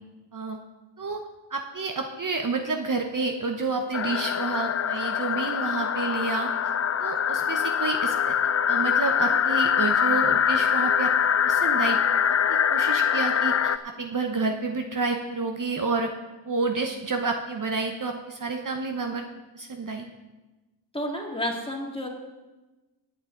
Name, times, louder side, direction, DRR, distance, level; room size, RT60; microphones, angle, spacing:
voice 1, 1.5-6.5 7.0-8.4 8.7-11.1 11.4-12.0 12.5-16.1 16.4-19.2 19.5-20.1, right 3 dB, 40° right, 4 dB, 0.9 m, -29 dB
sound 1, 3.9-13.8, left 8 dB, 35° left, 0.4 m, -24 dB
voice 2, 20.9-22.1, equal, 10° left, 0 dB, 2.0 m, -30 dB
17.5 x 8.4 x 3.8 m, 1.1 s
wide cardioid pair, 100°, 47 cm